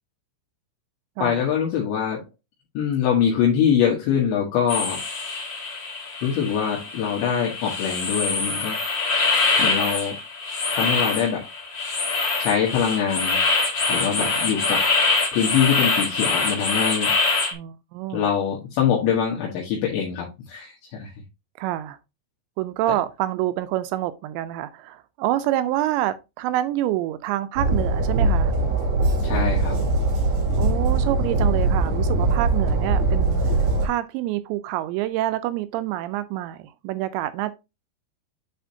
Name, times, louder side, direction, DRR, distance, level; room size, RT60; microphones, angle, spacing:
voice 1, 1.2-2.2 2.8-5.0 6.2-8.8 9.6-10.2 10.7-11.5 12.4-13.4 13.9-14.9 15.3-17.1 18.1-21.1 29.2-29.9, left 8 dB, 75° left, 3.5 m, -23 dB
sound 1, 4.7-17.5, left 3 dB, 45° left, 1.9 m, -24 dB
voice 2, 17.5-18.2 21.6-22.0 22.6-28.5 30.6-33.6 33.8-37.5, right 14 dB, 85° right, 2.7 m, -27 dB
Train, 27.5-33.9, right 2 dB, 55° right, 1.3 m, -21 dB
10.0 x 4.3 x 2.7 m
omnidirectional pair, 5.4 m